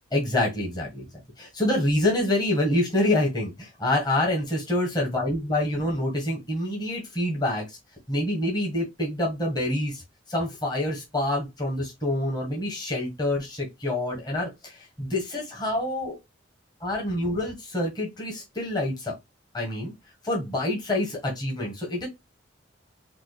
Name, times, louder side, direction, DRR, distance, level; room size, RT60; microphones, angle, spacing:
voice 1, 0.1-1.1 1.4-7.8 8.1-10.0 10.3-16.2 16.8-19.1 19.5-19.9 20.2-22.1, left 1 dB, 20° left, 1.4 m, -27 dB
4.6 x 2.5 x 2.2 m
head